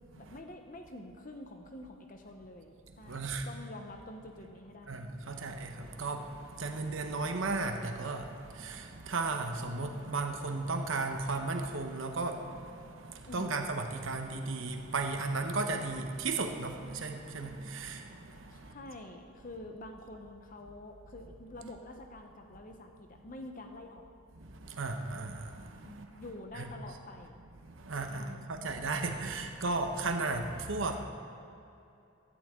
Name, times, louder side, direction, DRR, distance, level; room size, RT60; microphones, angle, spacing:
voice 1, 0.2-5.0 13.3-13.6 17.7-17.8 18.5-24.0 25.8-27.4 28.1-28.4, left 1 dB, 40° left, 4 dB, 0.8 m, -47 dB
voice 2, 3.0-3.5 4.9-18.8 24.4-26.2 26.5-26.7 27.6-31.0, right 3 dB, 75° right, 5 dB, 0.9 m, -35 dB
16.0 x 11.0 x 3.7 m, 2.7 s
head